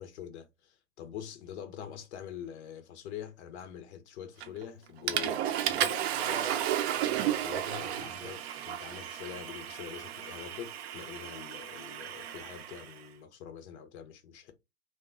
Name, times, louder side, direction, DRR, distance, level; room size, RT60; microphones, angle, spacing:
voice 1, 0.0-5.9 6.2-6.4 7.4-14.5, left 9 dB, 60° left, 0.6 m, -44 dB
Water / Toilet flush, 4.4-4.7 5.1-12.9, right 11 dB, 55° right, 0.5 m, -33 dB
voice 2, 5.7-8.4, right 1 dB, 10° right, 0.7 m, -46 dB
2.9 x 2.2 x 2.4 m
hypercardioid pair, 105°, 39 cm